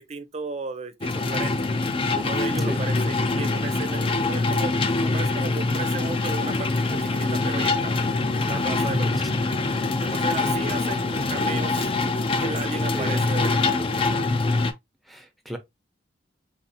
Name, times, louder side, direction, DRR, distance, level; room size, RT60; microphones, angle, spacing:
voice 1, 0.0-1.7 2.1-4.7 5.0-7.9 8.4-9.1 10.0-11.9 12.3-14.1, right 4 dB, 35° right, 0.5 m, -35 dB
sound 1, 1.0-14.7, left 3 dB, 30° left, 0.4 m, -24 dB
voice 2, 8.8-9.4 10.4-10.6 12.9-13.2 15.1-15.6, equal, ahead, 0.7 m, -33 dB
3.9 x 2.7 x 2.6 m
head